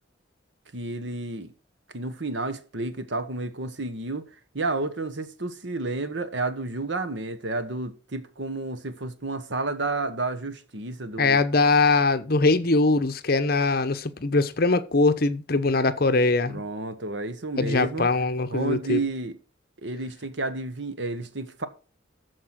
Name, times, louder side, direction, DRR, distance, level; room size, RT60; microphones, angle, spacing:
voice 1, 0.7-1.5 1.9-4.2 4.5-11.4 16.5-18.1 18.5-19.3 19.8-21.7, right 2 dB, 70° right, 1.3 m, -31 dB
voice 2, 11.2-16.6 17.6-19.0, left 3 dB, 50° left, 0.9 m, -22 dB
13.5 x 4.8 x 6.1 m
head